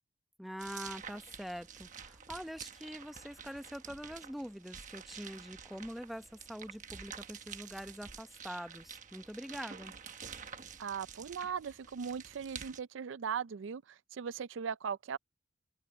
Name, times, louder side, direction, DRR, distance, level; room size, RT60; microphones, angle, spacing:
voice 1, 0.4-9.9, equal, ahead, 0.8 m, -44 dB
sound 1, 0.6-12.8, right 7 dB, 40° right, 1.2 m, -49 dB
voice 2, 10.8-15.2, right 7 dB, 80° right, 0.4 m, -39 dB
open air
head